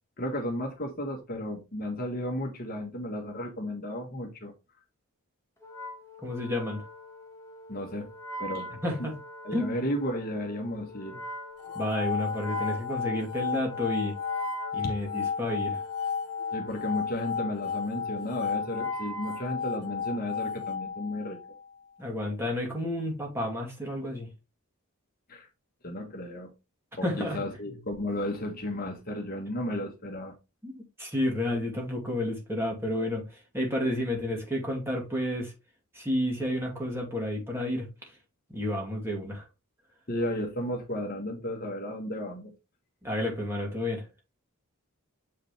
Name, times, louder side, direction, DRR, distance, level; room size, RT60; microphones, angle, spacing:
voice 1, 0.2-4.5 7.7-8.1 8.4-8.7 9.0-9.1 9.4-11.2 14.8-14.9 16.5-21.4 25.3-25.5 25.8-26.5 27.0-30.3 40.1-42.5, left 1 dB, 40° left, 1.4 m, -33 dB
Wind instrument woodwind instrument, 5.6-20.3, right 1 dB, 15° left, 1.5 m, -43 dB
voice 2, 6.2-6.8 8.8-9.2 9.5-9.7 11.7-14.2 14.7-15.8 22.0-24.3 27.0-27.4 30.6-35.5 35.9-38.1 38.5-39.5 43.0-44.1, left 1 dB, 10° right, 2.5 m, -31 dB
sound 1, 11.6-21.7, left 6 dB, 85° left, 1.0 m, -33 dB
7.6 x 5.0 x 3.4 m
head